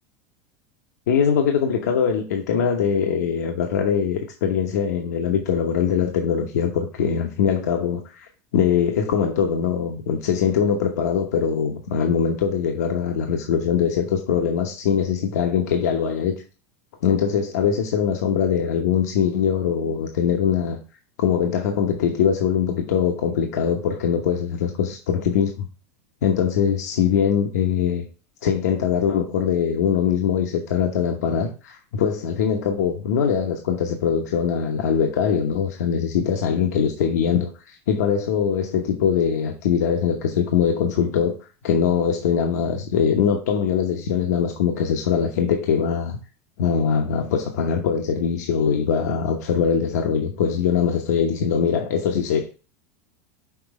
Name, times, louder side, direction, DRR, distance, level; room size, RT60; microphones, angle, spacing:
voice 1, 1.1-16.4 17.0-20.8 21.2-25.7 26.2-28.1 28.4-41.3 41.6-46.2 46.6-52.5, left 7 dB, 90° left, 1.0 m, -22 dB
6.0 x 4.0 x 4.8 m
supercardioid pair, 135°, 9 cm